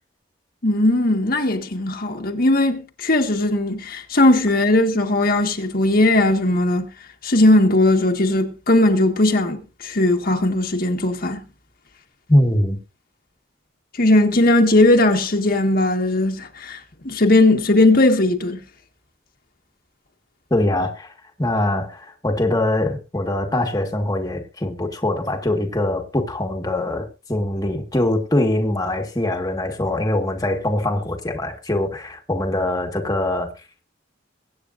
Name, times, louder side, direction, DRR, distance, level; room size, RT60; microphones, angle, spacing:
voice 1, 0.6-6.9 7.2-11.4 14.0-18.6, left 1 dB, 50° left, 1.6 m, -18 dB
voice 2, 12.3-12.8 20.5-21.1 21.4-33.5, left 1 dB, 20° left, 1.7 m, -22 dB
23.0 x 8.9 x 2.6 m
head